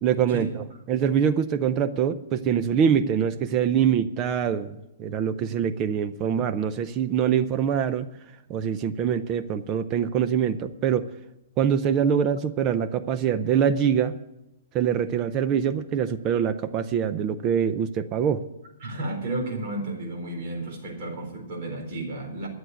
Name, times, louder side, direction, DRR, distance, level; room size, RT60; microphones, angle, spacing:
voice 1, 0.0-8.1 8.5-11.1 11.6-14.2 14.7-18.5, right 8 dB, 25° right, 0.5 m, -24 dB
voice 2, 18.8-22.5, right 2 dB, 45° right, 4.0 m, -32 dB
12.5 x 7.9 x 9.2 m
hypercardioid pair, 160°, 0 cm